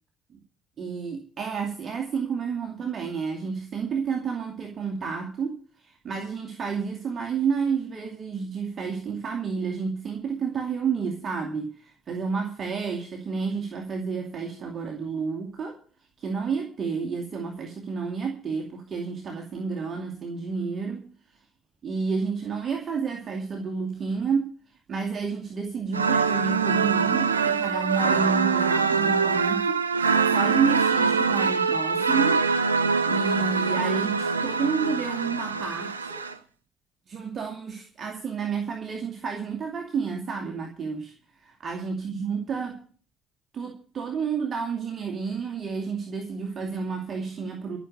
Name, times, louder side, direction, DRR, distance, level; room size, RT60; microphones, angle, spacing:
voice 1, 0.8-15.8 16.2-21.1 21.8-24.6 24.9-36.3 37.1-41.1 41.4-42.9 43.5-47.8, right 5 dB, 40° right, 2.4 m, -30 dB
sound 1, 25.9-36.3, right 5 dB, 85° right, 0.6 m, -24 dB
13.5 x 6.7 x 9.4 m
figure-of-eight pair, 50°, 0 cm